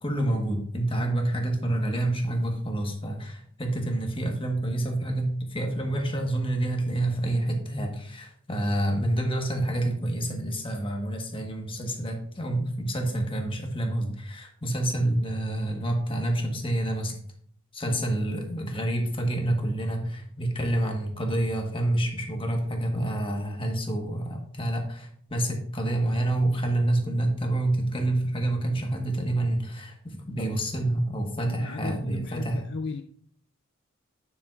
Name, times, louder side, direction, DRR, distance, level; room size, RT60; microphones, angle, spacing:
voice 1, 0.0-17.2 17.7-32.6, right 1 dB, 25° left, 3 dB, 1.3 m, -28 dB
voice 2, 31.4-33.0, left 4 dB, 50° left, 6 dB, 0.4 m, -35 dB
8.9 x 7.6 x 2.4 m, 0.62 s
head